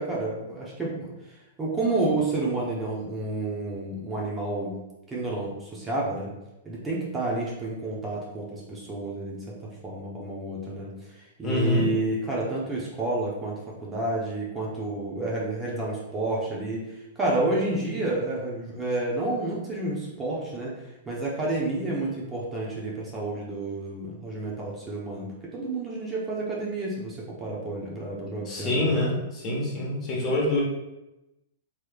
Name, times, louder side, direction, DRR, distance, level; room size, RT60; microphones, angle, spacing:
voice 1, 0.0-4.8 5.1-6.3 6.6-10.9 11.2-20.7 21.1-29.1, right 2 dB, 15° right, -4 dB, 0.8 m, -30 dB
voice 2, 11.4-11.9 28.5-30.6, left 1 dB, 30° left, -3 dB, 1.1 m, -25 dB
3.2 x 3.1 x 2.3 m, 0.96 s
hypercardioid pair, 125°, 0 cm